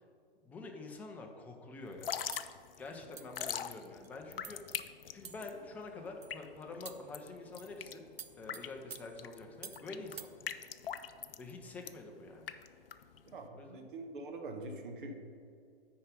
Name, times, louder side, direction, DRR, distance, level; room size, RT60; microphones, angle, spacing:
voice 1, 0.4-2.2 2.8-4.8 5.1-8.1 8.4-10.5 11.4-12.5 13.5-13.9, left 3 dB, 5° left, 2 dB, 0.4 m, -47 dB
Drip / Trickle dribble, 1.9-13.5, left 8 dB, 65° left, 0.5 m, -43 dB
sound 1, 2.3-2.5 3.2-3.4 4.0-4.1 4.4-4.7 5.2-5.6 6.2-6.4 6.8-7.1 7.6-7.8 8.2-9.9 10.2-10.4, right 7 dB, 80° right, 0.5 m, -50 dB
voice 2, 13.3-15.3, right 2 dB, 55° right, 5 dB, 1.1 m, -44 dB
9.4 x 4.7 x 5.2 m, 2.4 s
figure-of-eight pair, 110°, 30 cm